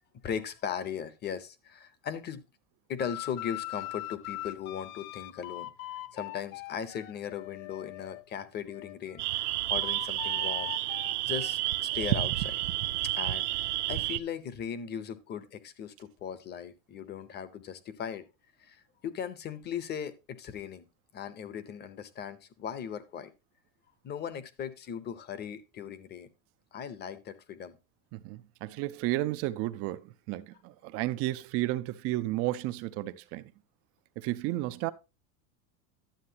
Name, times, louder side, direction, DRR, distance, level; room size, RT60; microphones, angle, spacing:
voice 1, 0.2-2.4 2.9-5.7 6.1-11.0 11.2-12.6 13.1-18.2 18.6-20.9 21.1-23.3 24.0-26.3 26.7-27.8, left 8 dB, 25° left, 0.7 m, -38 dB
sound 1, 3.0-8.2 8.7-14.0, left 18 dB, 65° left, 0.6 m, -43 dB
sound 2, 9.2-14.2, right 17 dB, 90° right, 0.7 m, -30 dB
voice 2, 28.1-33.5 34.2-34.9, right 16 dB, 35° right, 0.4 m, -32 dB
11.5 x 7.4 x 2.8 m
supercardioid pair, 150°, 44 cm